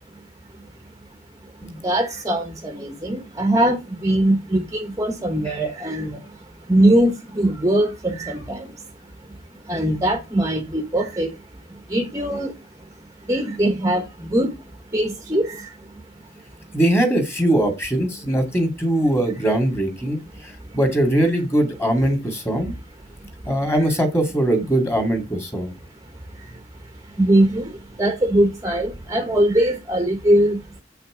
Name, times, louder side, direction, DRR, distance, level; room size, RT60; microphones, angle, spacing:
voice 1, 1.4-16.0 16.3-16.4 16.7-16.8 20.3-20.8 21.2-21.3 22.5-22.8 23.1-23.9 25.8-30.8, right 1 dB, 20° right, 1.0 m, -23 dB
voice 2, 16.7-22.7 23.5-25.7, right 1 dB, 10° left, 2.3 m, -21 dB
8.1 x 5.8 x 5.0 m
head